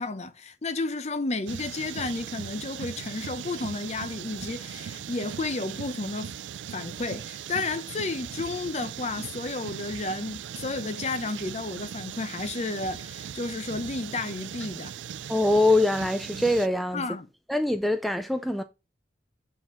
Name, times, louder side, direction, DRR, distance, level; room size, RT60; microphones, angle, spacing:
voice 1, 0.0-6.4 6.7-14.9 16.9-17.3, left 3 dB, 40° left, 0.7 m, -32 dB
sound 1, 1.5-16.7, right 9 dB, 85° right, 0.3 m, -39 dB
voice 2, 15.3-17.0 17.5-18.6, left 1 dB, ahead, 0.4 m, -23 dB
7.4 x 4.7 x 3.7 m
head